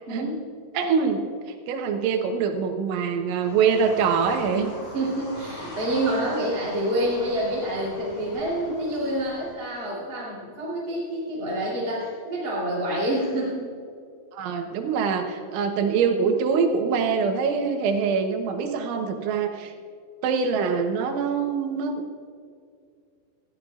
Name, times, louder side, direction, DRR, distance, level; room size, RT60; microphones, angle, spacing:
voice 1, 0.1-0.5 4.9-13.7, right 1 dB, 25° right, -7 dB, 3.1 m, -27 dB
voice 2, 0.8-1.3 1.7-4.7 14.3-19.7 20.2-22.0, right 6 dB, 85° right, 4 dB, 3.5 m, -24 dB
sound 1, 3.4-9.5, left 1 dB, 40° left, 3.2 m, -41 dB
21.0 x 15.0 x 2.5 m, 2.2 s
omnidirectional pair, 5.3 m